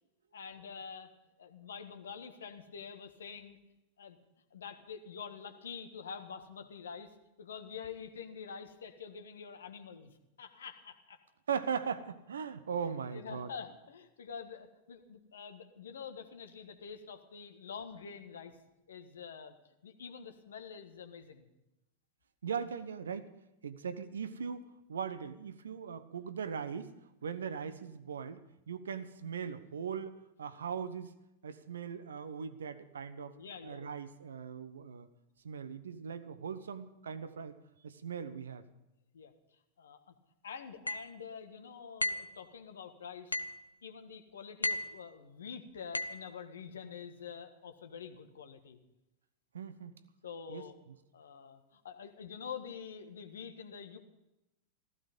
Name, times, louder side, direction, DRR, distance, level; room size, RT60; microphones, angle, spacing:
voice 1, 0.3-1.1 1.4-3.6 4.0-4.2 4.5-11.2 12.8-18.6 18.9-19.5 19.8-21.5 33.3-33.8 39.1-39.3 39.8-40.1 40.4-43.4 43.8-48.8 50.2-50.7 51.1-54.0, left 6 dB, 65° left, 8 dB, 1.6 m, -47 dB
voice 2, 11.5-13.5 22.4-23.3 23.6-27.0 27.2-33.4 33.6-35.1 35.4-37.6 37.8-38.6 49.5-49.9 50.5-51.0, right 6 dB, 65° right, 13 dB, 1.0 m, -39 dB
sound 1, 40.9-41.1 42.0-42.3 43.3-43.6 44.6-45.0 45.9-46.3, left 2 dB, 85° left, 0.6 m, -34 dB
15.0 x 15.0 x 5.3 m, 0.93 s
figure-of-eight pair, 90°, 0 cm